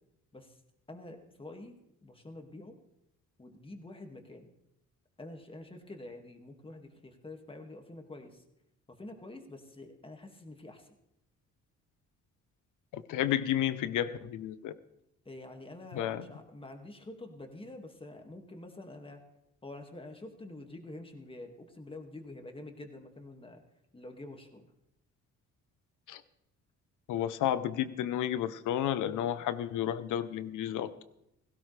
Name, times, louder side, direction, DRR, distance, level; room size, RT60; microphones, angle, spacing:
voice 1, 0.9-2.8 3.4-4.5 5.2-8.4 9.0-10.9 15.3-19.2 19.6-23.6 23.9-24.6, left 2 dB, 20° left, 4 dB, 2.2 m, -47 dB
voice 2, 12.9-14.7 15.9-16.2 26.1-26.2 27.1-30.9, left 11 dB, 85° left, 14 dB, 0.9 m, -31 dB
17.0 x 16.5 x 3.4 m, 0.84 s
cardioid pair, 90°, 30 cm